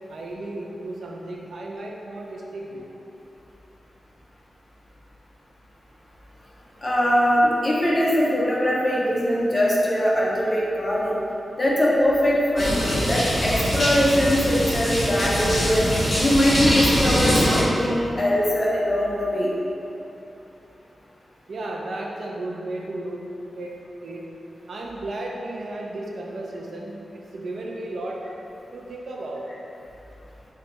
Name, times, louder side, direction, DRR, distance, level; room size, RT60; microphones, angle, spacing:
voice 1, 0.1-2.9 21.5-24.3 24.7-28.3 28.7-29.5, right 1 dB, 70° right, -1 dB, 0.3 m, -34 dB
voice 2, 6.8-11.2 11.6-15.9 16.2-19.5, equal, 25° left, -5 dB, 0.5 m, -21 dB
sound 1, 12.6-17.6, equal, 45° left, 1.2 m, -23 dB
2.7 x 2.2 x 4.0 m, 2.9 s
wide cardioid pair, 125°, 0 cm